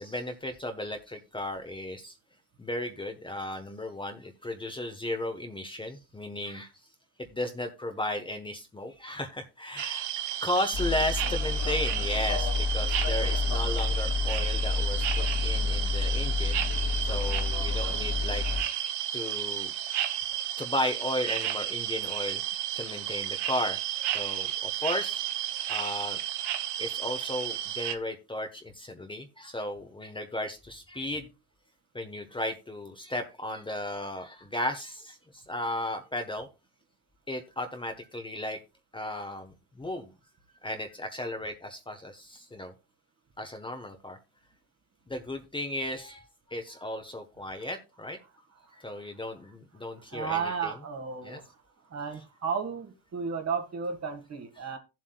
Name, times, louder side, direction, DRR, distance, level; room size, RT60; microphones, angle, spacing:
voice 1, 0.0-2.1 2.6-6.7 7.2-10.1 10.4-16.7 17.0-18.4 19.1-19.7 20.6-22.4 22.8-23.8 24.1-25.2 25.7-26.2 26.8-31.3 31.9-36.5 37.3-38.6 38.9-40.1 40.6-42.7 43.4-44.2 45.1-46.2 46.5-48.2 48.7-50.7 51.2-51.4 54.6-54.7, left 1 dB, 10° left, 1.1 m, -35 dB
sound 1, 9.8-28.0, right 11 dB, 70° right, 1.0 m, -32 dB
sound 2, 10.7-18.6, left 4 dB, 80° left, 3.4 m, -29 dB
voice 2, 50.1-51.5 51.9-54.8, right 6 dB, 40° right, 1.8 m, -33 dB
15.5 x 7.6 x 2.3 m
cardioid pair, 115°, 42 cm